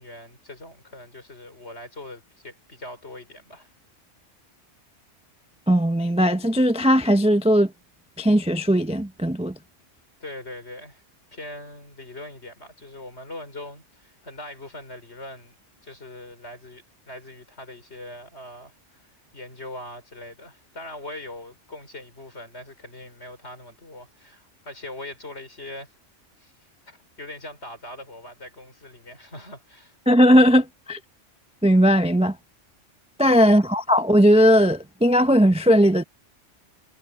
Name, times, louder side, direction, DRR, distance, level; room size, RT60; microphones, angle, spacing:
voice 1, 0.0-3.7 10.2-11.0 11.3-25.9 26.4-26.5 26.9-30.0 33.2-33.6, left 1 dB, 60° left, 5.4 m, -41 dB
voice 2, 5.7-7.7 8.2-9.5 30.1-31.0 31.6-32.4 33.2-36.0, equal, 10° right, 0.3 m, -18 dB
omnidirectional pair, 1.3 m